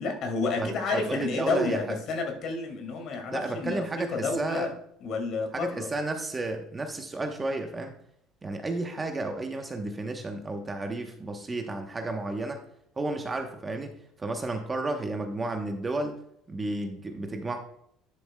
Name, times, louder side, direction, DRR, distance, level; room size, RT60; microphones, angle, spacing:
voice 1, 0.0-4.7 5.0-5.9, left 3 dB, 55° left, 4 dB, 2.2 m, -30 dB
voice 2, 0.6-2.0 3.3-4.7 5.5-7.9 8.4-12.6 13.0-13.9 14.2-16.1 16.5-17.6, right 2 dB, 20° right, 5 dB, 1.0 m, -32 dB
11.0 x 6.9 x 2.3 m, 0.69 s
cardioid pair, 130°, 0 cm